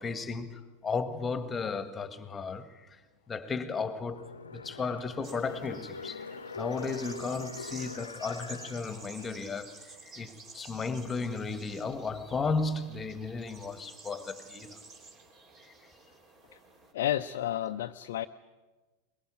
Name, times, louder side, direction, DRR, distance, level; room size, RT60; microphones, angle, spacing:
voice 1, 0.0-3.0 3.3-14.8, left 4 dB, 15° left, 1.8 m, -35 dB
sound 1, 4.1-9.7 10.0-10.1, left 4 dB, 75° left, 1.1 m, -44 dB
sound 2, 5.2-16.9, right 3 dB, 30° right, 3.2 m, -51 dB
voice 2, 16.9-18.3, left 12 dB, 55° left, 0.8 m, -31 dB
23.0 x 21.5 x 9.0 m
figure-of-eight pair, 90°, 0 cm